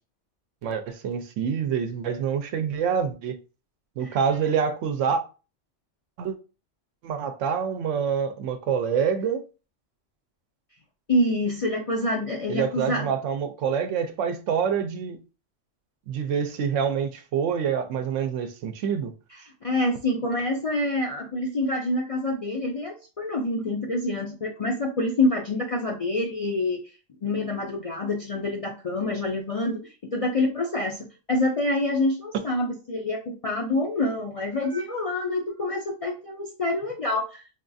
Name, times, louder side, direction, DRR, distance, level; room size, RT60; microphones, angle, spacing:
voice 1, 0.6-3.4 4.0-5.2 6.2-6.4 7.0-9.4 12.5-15.2 16.1-19.1, right 7 dB, 80° right, 0.9 m, -26 dB
voice 2, 11.1-13.1 19.6-26.8 27.2-29.8 30.1-37.4, left 2 dB, 50° left, 0.4 m, -26 dB
4.2 x 2.3 x 2.6 m
omnidirectional pair, 1.2 m